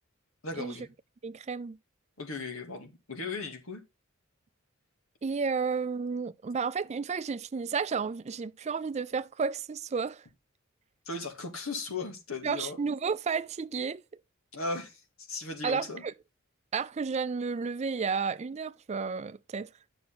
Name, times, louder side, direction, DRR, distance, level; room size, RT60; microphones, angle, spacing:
voice 1, 0.4-0.9 2.2-3.8 11.1-12.8 14.5-15.0 15.3-16.0, left 3 dB, 85° left, 2.2 m, -37 dB
voice 2, 1.2-1.8 5.2-10.2 12.4-14.0 15.6-16.1 16.7-19.7, right 5 dB, 30° right, 0.4 m, -32 dB
9.6 x 7.0 x 3.8 m
head